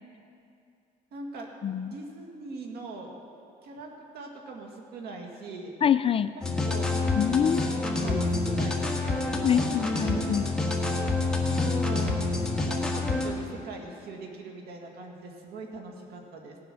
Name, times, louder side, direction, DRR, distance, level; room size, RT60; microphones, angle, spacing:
voice 1, 1.1-1.5 1.8-3.1 3.6-5.7 6.2-6.3 6.7-6.9 7.4-9.7 11.5-12.2 12.6-16.6, right 3 dB, 70° right, 1 dB, 2.1 m, -41 dB
voice 2, 1.6-1.9 5.8-6.3 7.2-7.6 8.0-8.2 9.4-10.5, left 8 dB, 35° left, 13 dB, 0.4 m, -25 dB
sound 1, 6.4-13.3, left 2 dB, 5° left, 1.6 m, -27 dB
17.0 x 8.1 x 6.2 m, 2.5 s
cardioid pair, 110°, 17 cm